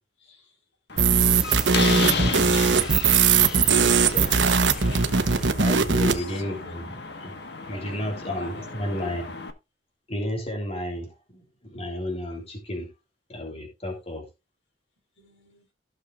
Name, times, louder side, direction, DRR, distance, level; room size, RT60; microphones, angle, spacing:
voice 1, 0.2-0.5 4.3-5.1 5.7-6.7 7.7-8.0 8.4-8.9 15.2-15.6, left 2 dB, 90° left, 4.9 m, -44 dB
Slam, 0.9-9.5, left 4 dB, 60° left, 1.5 m, -33 dB
sound 1, 1.0-6.2, right 6 dB, 85° right, 1.1 m, -20 dB
sound 2, 1.1-5.9, equal, 5° right, 1.4 m, -38 dB
voice 2, 5.6-7.4 7.7-9.3 10.1-12.9 13.3-14.3, left 1 dB, 35° left, 3.3 m, -32 dB
16.0 x 6.5 x 2.5 m
head